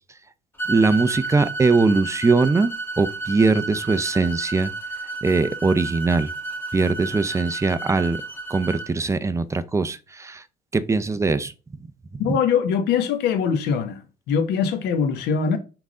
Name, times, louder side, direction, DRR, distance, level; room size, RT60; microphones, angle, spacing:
sound 1, 0.6-8.9, right 3 dB, 15° left, 2.4 m, -32 dB
voice 1, 0.7-4.7 5.2-6.3 6.7-8.2 8.5-10.4 10.7-11.5, right 3 dB, 15° right, 0.6 m, -21 dB
voice 2, 12.2-14.0 14.3-15.6, left 6 dB, 90° left, 1.4 m, -22 dB
5.9 x 3.8 x 5.4 m
cardioid pair, 110°, 17 cm